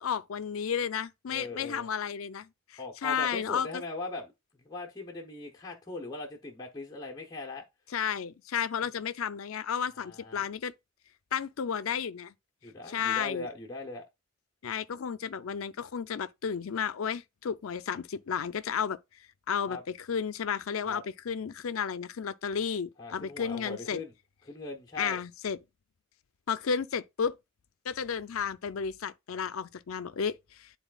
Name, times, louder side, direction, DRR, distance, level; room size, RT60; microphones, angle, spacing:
voice 1, 0.0-3.7 7.9-10.7 11.3-12.3 12.9-13.5 14.6-19.0 19.5-24.0 25.0-25.6 26.5-27.4 27.9-30.7, left 7 dB, 85° left, 0.5 m, -32 dB
voice 2, 1.3-1.9 2.8-7.7 10.0-10.5 12.6-14.0 19.7-19.8 20.8-21.0 23.0-24.1 24.4-25.2, left 2 dB, 20° left, 0.8 m, -40 dB
10.0 x 4.0 x 2.3 m
head